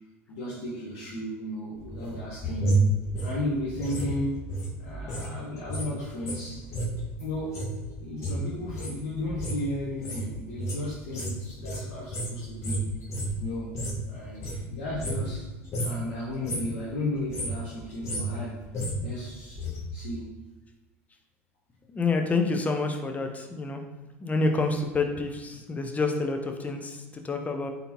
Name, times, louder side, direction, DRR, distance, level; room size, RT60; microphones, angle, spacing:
voice 1, 0.3-2.8 3.2-4.4 4.8-6.7 7.2-7.6 8.0-12.8 13.4-13.8 14.1-15.5 15.8-18.6 19.0-19.6 19.9-20.3, left 1 dB, 70° left, -6 dB, 1.1 m, -34 dB
sound 1, 1.7-5.3 5.6-14.1 14.3-15.4 15.7-16.0 16.3-16.8 17.1-19.8 20.1-20.2, right 1 dB, 45° left, 1.3 m, -31 dB
voice 2, 21.9-23.8 24.2-27.7, left 3 dB, 20° left, 4 dB, 0.7 m, -28 dB
3.9 x 3.6 x 2.8 m, 1.1 s
hypercardioid pair, 80°, 7 cm